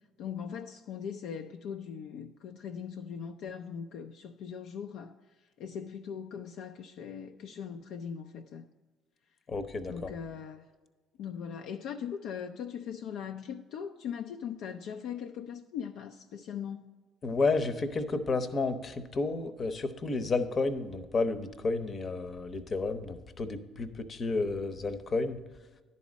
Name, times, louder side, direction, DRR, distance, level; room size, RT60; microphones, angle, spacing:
voice 1, 0.2-5.1 5.6-8.7 9.9-10.7 11.2-16.9, left 7 dB, 70° left, 0.4 m, -40 dB
voice 2, 9.5-10.1 17.2-25.4, left 3 dB, 40° left, 0.8 m, -31 dB
10.5 x 4.2 x 6.2 m
supercardioid pair, 70°, 0 cm